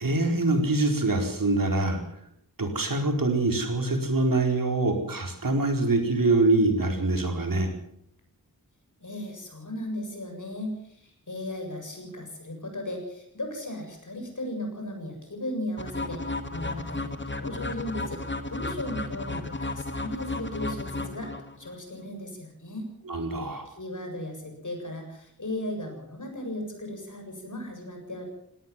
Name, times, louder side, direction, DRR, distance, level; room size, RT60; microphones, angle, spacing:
voice 1, 0.0-2.0 2.6-7.7 23.1-23.6, right 2 dB, 65° right, 4 dB, 4.5 m, -24 dB
voice 2, 9.0-16.2 16.5-18.2 18.5-22.9 23.7-28.3, left 1 dB, 55° left, 4 dB, 7.6 m, -36 dB
sound 1, 15.8-21.7, left 2 dB, 30° left, 2.1 m, -33 dB
19.5 x 18.0 x 7.5 m, 0.72 s
wide cardioid pair, 75°, 36 cm